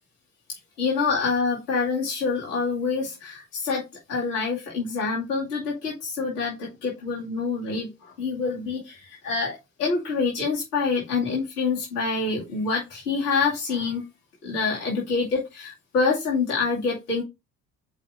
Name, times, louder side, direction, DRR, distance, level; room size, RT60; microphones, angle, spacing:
voice 1, 0.8-3.8 4.1-14.0 14.4-17.2, left 4 dB, 80° left, -4 dB, 2.3 m, -26 dB
5.3 x 4.9 x 3.8 m, 0.23 s
figure-of-eight pair, 50°, 46 cm